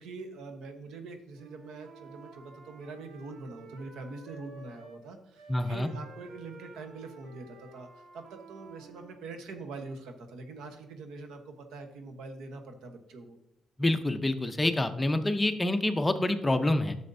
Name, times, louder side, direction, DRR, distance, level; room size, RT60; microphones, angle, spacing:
voice 1, 0.0-13.4, right 3 dB, 90° right, 6 dB, 1.1 m, -44 dB
Wind instrument woodwind instrument, 1.3-5.0 5.3-9.2, right 2 dB, 65° right, 1.5 m, -51 dB
voice 2, 5.5-5.9 13.8-17.0, left 1 dB, 15° left, 8 dB, 0.7 m, -27 dB
11.0 x 6.8 x 2.7 m, 0.89 s
cardioid pair, 95°, 0 cm